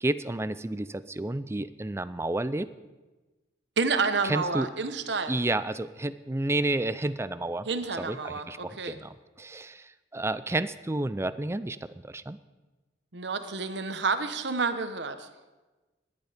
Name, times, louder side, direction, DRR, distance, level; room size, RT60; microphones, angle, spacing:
voice 1, 0.0-2.7 4.2-4.7 5.3-7.7 8.0-12.4, right 2 dB, 15° right, 14 dB, 0.4 m, -31 dB
voice 2, 3.8-5.4 7.7-9.0 13.1-15.3, right 4 dB, 70° right, 9 dB, 1.1 m, -29 dB
18.5 x 10.5 x 5.1 m, 1.2 s
head